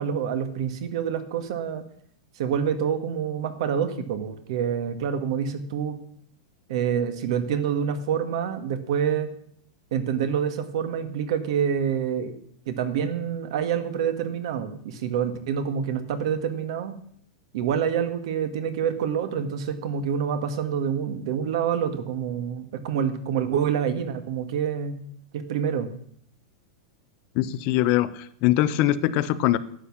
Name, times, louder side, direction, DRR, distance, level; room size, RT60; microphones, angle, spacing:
voice 1, 0.0-1.8 2.4-6.0 6.7-9.3 9.9-12.3 12.7-17.0 17.5-25.0 25.3-26.0, right 8 dB, 60° right, 10 dB, 1.7 m, -27 dB
voice 2, 27.3-29.6, left 14 dB, 40° left, 15 dB, 0.7 m, -22 dB
11.5 x 8.7 x 7.3 m, 0.65 s
supercardioid pair, 160°, 3 cm